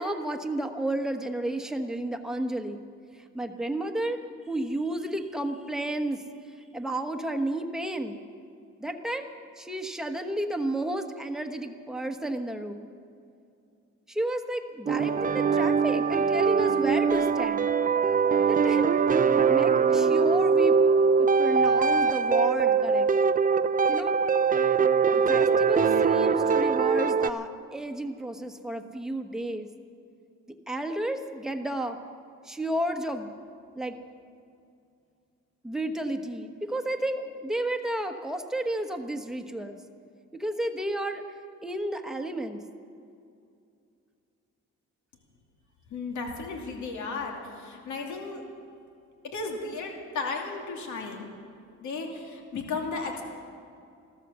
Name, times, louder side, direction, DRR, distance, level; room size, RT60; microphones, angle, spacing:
voice 1, 0.0-2.8 3.2-4.2 4.5-6.2 6.7-8.2 8.8-12.9 14.1-17.7 18.5-19.0 19.5-20.8 21.2-23.1 23.9-24.2 25.1-29.7 30.7-32.0 32.4-33.3 33.8-34.0 35.6-39.8 40.3-41.2 41.6-42.6, right 1 dB, ahead, 5 dB, 1.2 m, -32 dB
sound 1, 14.9-27.3, right 5 dB, 30° right, 0.6 m, -22 dB
voice 2, 45.9-48.4 49.2-51.3 51.8-53.2, left 4 dB, 75° left, 1 dB, 2.8 m, -34 dB
15.0 x 13.5 x 6.9 m, 2.4 s
cardioid pair, 90°, 30 cm